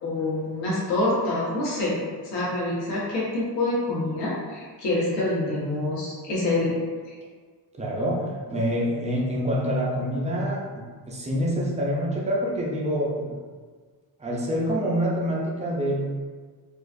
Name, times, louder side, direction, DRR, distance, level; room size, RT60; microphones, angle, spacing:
voice 1, 0.0-6.7 7.1-7.2, left 2 dB, 85° left, -6 dB, 1.4 m, -26 dB
voice 2, 7.8-13.4 14.2-16.0, equal, 20° right, -4 dB, 0.3 m, -26 dB
4.2 x 2.3 x 2.5 m, 1.5 s
cardioid pair, 170°, 43 cm